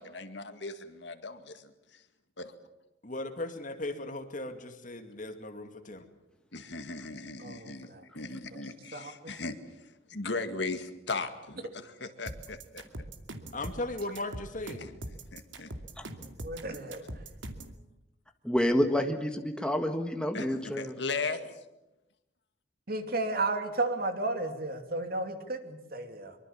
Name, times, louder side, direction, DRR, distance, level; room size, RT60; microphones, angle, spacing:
voice 1, 0.0-1.4 2.4-2.5 6.5-7.9 8.1-9.6 10.1-12.6 15.3-15.7 20.3-20.5 20.8-21.4, left 3 dB, 60° left, 9 dB, 2.1 m, -37 dB
voice 2, 3.0-6.1 13.5-14.9, left 2 dB, 40° left, 6 dB, 2.4 m, -37 dB
voice 3, 7.4-8.0 8.5-8.6 8.9-9.3 16.4-17.0 22.9-26.4, right 2 dB, 50° right, 7 dB, 2.8 m, -33 dB
sound 1, 12.3-17.8, right 1 dB, 75° right, 2.5 m, -42 dB
voice 4, 18.4-21.0, equal, 5° left, 5 dB, 1.7 m, -28 dB
24.5 x 24.0 x 7.4 m, 0.92 s
head